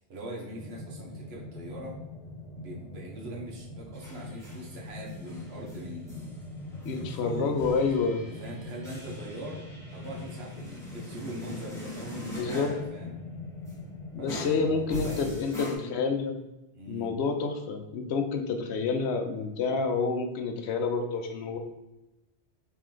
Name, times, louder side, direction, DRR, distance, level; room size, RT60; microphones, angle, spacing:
voice 1, 0.1-2.0 2.6-6.3 6.9-7.6 8.4-9.7 9.9-13.1 14.2-15.4 16.7-17.1, right 1 dB, 70° right, -3 dB, 1.2 m, -41 dB
sound 1, 0.6-14.9, left 2 dB, 30° left, 1.0 m, -43 dB
sound 2, 3.9-4.7 5.1-12.9 13.7-13.8 14.3-15.8, equal, 5° left, 1.1 m, -43 dB
voice 2, 6.8-8.2 12.4-12.7 14.1-16.4 16.9-21.6, left 4 dB, 80° left, 5 dB, 0.8 m, -29 dB
3.3 x 3.1 x 3.7 m, 0.98 s
omnidirectional pair, 1.1 m